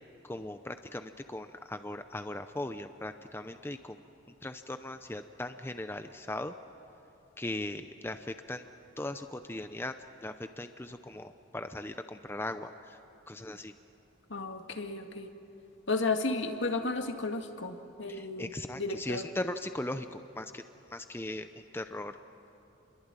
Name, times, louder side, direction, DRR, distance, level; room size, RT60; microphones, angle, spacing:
voice 1, 0.2-4.0 4.4-6.5 7.4-8.7 9.0-9.9 10.2-13.0 13.3-13.7 18.1-20.6 20.9-21.5 21.7-22.1, left 1 dB, 10° left, 8 dB, 0.6 m, -38 dB
voice 2, 14.3-15.3 15.9-19.3, left 3 dB, 70° left, 5 dB, 1.9 m, -33 dB
29.0 x 22.5 x 9.0 m, 2.8 s
head